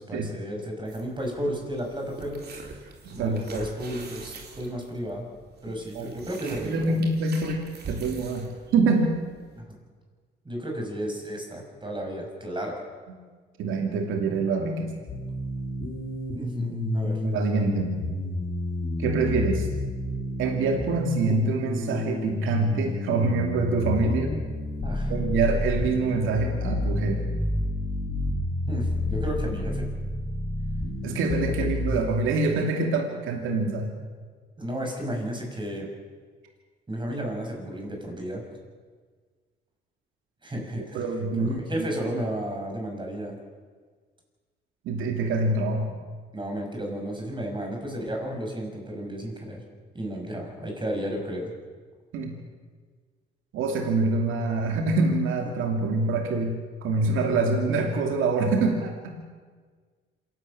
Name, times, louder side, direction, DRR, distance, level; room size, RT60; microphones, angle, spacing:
voice 1, 0.0-2.5 3.1-5.2 5.6-7.0 9.5-9.8 10.4-12.8 16.3-17.2 24.8-25.1 28.7-29.9 34.6-35.9 36.9-38.4 40.4-41.0 41.4-43.4 46.3-49.6 49.9-51.5 55.6-55.7, right 1 dB, 25° right, 2 dB, 6.7 m, -33 dB
sound 1, 0.9-9.6, right 4 dB, 55° right, 3.8 m, -44 dB
voice 2, 3.0-3.6 5.9-6.1 6.4-9.2 13.6-14.9 17.2-18.0 19.0-19.7 20.4-24.3 25.1-27.3 31.0-33.9 40.8-41.9 44.8-46.0 52.1-52.4 53.5-59.2, right 3 dB, 85° right, 3 dB, 2.6 m, -25 dB
sound 2, 15.1-32.0, left 1 dB, 50° left, 5.1 m, -30 dB
26.5 x 12.0 x 8.6 m, 1.5 s
cardioid pair, 90°, 20 cm